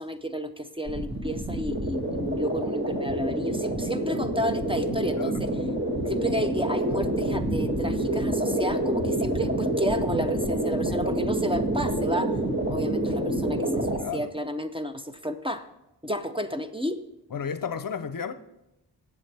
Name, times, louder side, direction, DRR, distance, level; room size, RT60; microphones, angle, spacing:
voice 1, 0.0-5.5 6.0-12.4 12.7-15.7 16.0-17.0, equal, 15° right, 0.6 m, -31 dB
sound 1, 0.9-14.0, right 1 dB, 30° right, 2.2 m, -27 dB
voice 2, 14.0-14.3 17.3-18.3, left 7 dB, 55° left, 0.7 m, -33 dB
19.0 x 7.4 x 3.4 m
wide cardioid pair, 80°, 41 cm